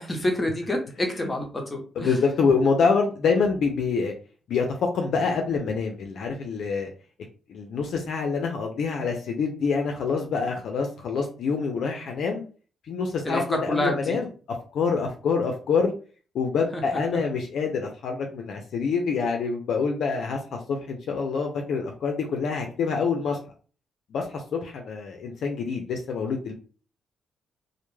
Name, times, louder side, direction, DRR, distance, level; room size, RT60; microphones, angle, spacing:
voice 1, 0.0-2.1 13.2-14.2 16.7-16.8, left 1 dB, 20° left, 3 dB, 0.7 m, -27 dB
voice 2, 2.0-4.1 4.5-4.7 4.9-6.9 7.5-12.4 12.9-13.4 13.8-14.3 14.7-15.9 16.3-23.4 24.1-26.5, left 5 dB, 70° left, 2 dB, 0.4 m, -26 dB
2.2 x 2.1 x 3.1 m, 0.38 s
cardioid pair, 125°, 0 cm